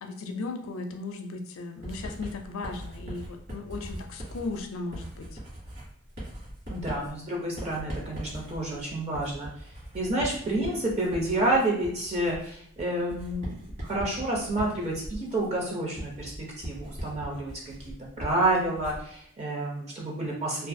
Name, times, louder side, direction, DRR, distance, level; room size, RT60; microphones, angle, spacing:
voice 1, 0.0-5.3, left 3 dB, 85° left, 5 dB, 0.4 m, -36 dB
Writing, 1.8-19.2, equal, 55° right, 1.2 m, -40 dB
voice 2, 6.7-9.5 9.9-17.7 18.2-20.7, right 1 dB, 30° right, -3 dB, 0.5 m, -29 dB
2.4 x 2.4 x 2.5 m, 0.68 s
head